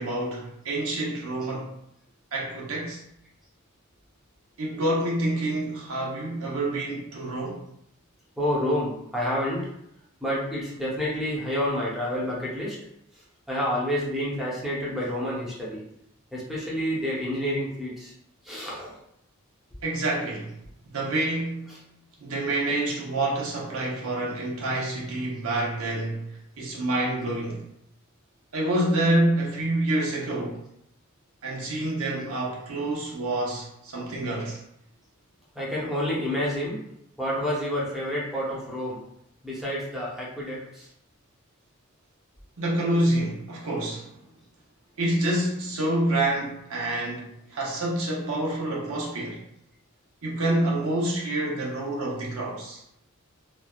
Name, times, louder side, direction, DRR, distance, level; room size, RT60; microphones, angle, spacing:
voice 1, 0.0-1.7 2.3-3.0 4.6-7.6 19.8-20.5 20.9-21.7 22.2-27.6 28.5-30.6 31.4-34.6 42.6-44.1 45.0-49.4 50.2-52.8, right 1 dB, 85° right, 0.9 m, -27 dB
voice 2, 8.4-9.7 10.2-12.8 13.5-15.8 16.3-18.1 18.4-19.0 35.5-36.8 37.2-39.0 39.4-40.9, equal, ahead, 0.8 m, -29 dB
3.2 x 2.3 x 2.3 m
head